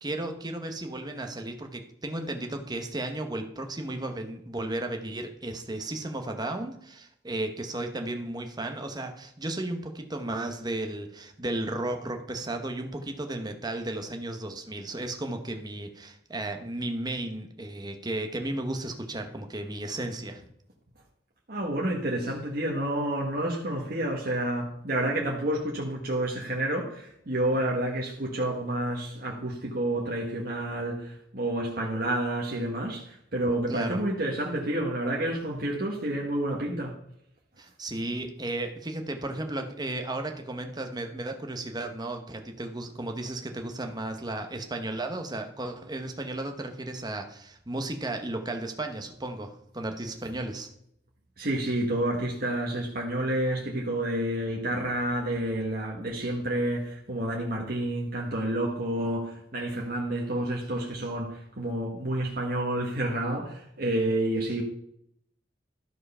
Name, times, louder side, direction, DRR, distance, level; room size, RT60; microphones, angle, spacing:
voice 1, 0.0-20.4 33.7-34.0 37.6-50.7, right 2 dB, 25° right, 1.0 m, -34 dB
voice 2, 21.5-37.0 51.4-64.6, right 1 dB, 55° right, 1.4 m, -29 dB
12.5 x 4.7 x 5.5 m
head